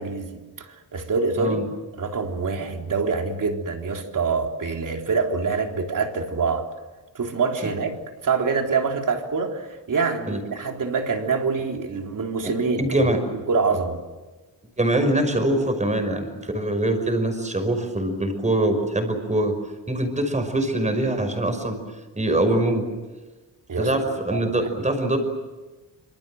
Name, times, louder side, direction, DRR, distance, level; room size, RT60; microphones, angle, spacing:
voice 1, 0.0-1.6 2.0-6.7 7.1-7.9 8.2-13.1 13.5-14.0 23.7-23.9 24.3-24.9, right 4 dB, 50° right, 3 dB, 3.8 m, -25 dB
voice 2, 12.8-13.2 14.8-19.5 19.9-21.8 22.2-22.9 23.8-25.2, right 1 dB, 15° right, 6 dB, 5.7 m, -23 dB
26.5 x 26.0 x 7.9 m, 1.2 s
wide cardioid pair, 140°, 42 cm